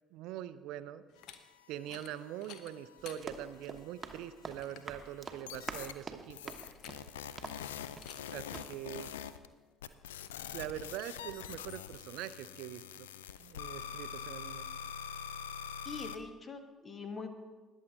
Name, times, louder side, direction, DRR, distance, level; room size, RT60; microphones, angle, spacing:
voice 1, 0.1-1.0 1.7-6.6 8.3-9.1 10.5-13.1 13.4-14.7, right 12 dB, 65° right, 14 dB, 0.5 m, -43 dB
sound 1, 1.1-1.4 1.8-2.1 2.4-3.2 3.8-3.9 4.3-4.4 4.6-4.9 6.6-7.2 7.5-7.7 8.0-8.2 8.5-8.6, left 9 dB, 60° left, 0.8 m, -52 dB
sound 2, 1.2-3.8 4.1-4.7 5.5-5.9 6.3-9.5 9.8-16.2, left 8 dB, 75° left, 0.4 m, -45 dB
Run, 3.0-8.3 8.5-8.7, right 4 dB, 25° right, 1.1 m, -47 dB
voice 2, 15.8-17.6, left 4 dB, 30° left, 7 dB, 1.5 m, -43 dB
20.5 x 7.3 x 3.7 m, 1.4 s
figure-of-eight pair, 50°, 0 cm